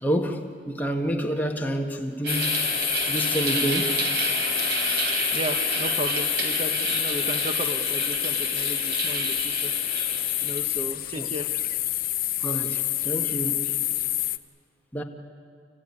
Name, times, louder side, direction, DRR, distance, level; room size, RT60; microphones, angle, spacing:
voice 1, 0.0-2.7 3.1-4.0 10.5-10.6 11.1-11.4 12.4-13.7 14.9-15.0, right 1 dB, 10° left, 1.6 m, -28 dB
sound 1, 2.2-10.6, right 3 dB, 70° right, 3.6 m, -30 dB
sound 2, 2.3-14.4, left 15 dB, 50° left, 0.7 m, -28 dB
voice 2, 5.3-10.1 10.4-11.5, right 1 dB, 30° right, 0.9 m, -35 dB
30.0 x 16.0 x 9.8 m
head